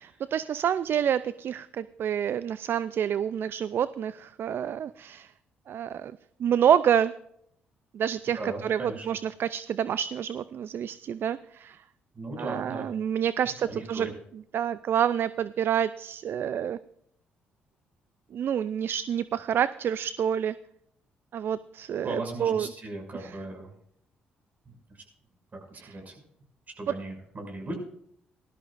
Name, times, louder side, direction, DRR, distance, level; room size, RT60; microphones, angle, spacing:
voice 1, 0.3-5.3 5.7-7.1 7.9-11.8 12.4-14.1 14.5-16.8 18.3-20.5 21.3-22.7 23.2-23.3 25.7-25.9, right 9 dB, 60° right, 16 dB, 0.4 m, -28 dB
voice 2, 8.4-9.1 12.1-12.9 13.7-14.1 22.0-23.7 24.9-25.0 25.7-26.1 26.8-27.7, right 2 dB, 40° right, 2 dB, 6.3 m, -37 dB
18.5 x 13.0 x 2.6 m, 0.69 s
supercardioid pair, 60°, 4 cm